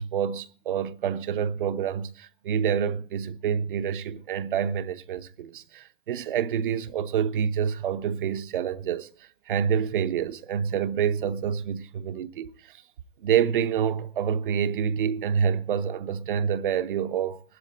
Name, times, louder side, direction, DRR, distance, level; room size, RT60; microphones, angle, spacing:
voice 1, 0.0-12.8 13.2-17.4, right 8 dB, 40° right, 0.9 m, -27 dB
17.5 x 13.0 x 4.1 m
hypercardioid pair, 155°, 39 cm